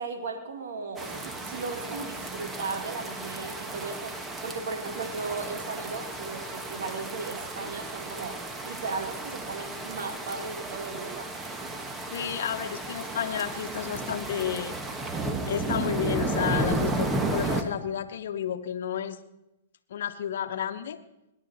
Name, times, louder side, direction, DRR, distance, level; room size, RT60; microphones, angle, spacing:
voice 1, 0.0-8.4 8.6-11.3, right 4 dB, 75° right, 5 dB, 2.2 m, -36 dB
sound 1, 1.0-17.6, right 2 dB, 15° right, 1.3 m, -33 dB
voice 2, 12.1-15.0 15.5-19.2 19.9-21.0, left 9 dB, 70° left, 8 dB, 1.0 m, -31 dB
18.5 x 10.5 x 4.1 m, 0.91 s
hypercardioid pair, 130°, 0 cm